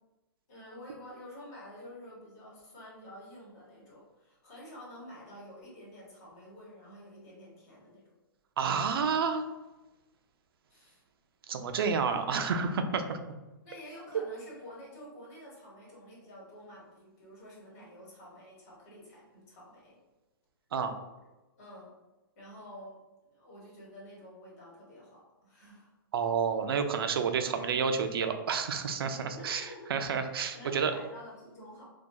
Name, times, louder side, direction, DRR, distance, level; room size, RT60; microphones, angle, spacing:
voice 1, 0.5-8.0 10.7-11.0 13.6-20.0 21.6-21.9 22.4-23.0 23.3-25.9 29.3-29.9 30.5-31.8, equal, 45° left, -5 dB, 1.0 m, -49 dB
voice 2, 8.6-9.5 11.5-13.2 20.7-20.9 26.1-30.9, right 6 dB, 85° right, 6 dB, 0.4 m, -30 dB
2.6 x 2.2 x 2.2 m, 1.1 s
hypercardioid pair, 155°, 12 cm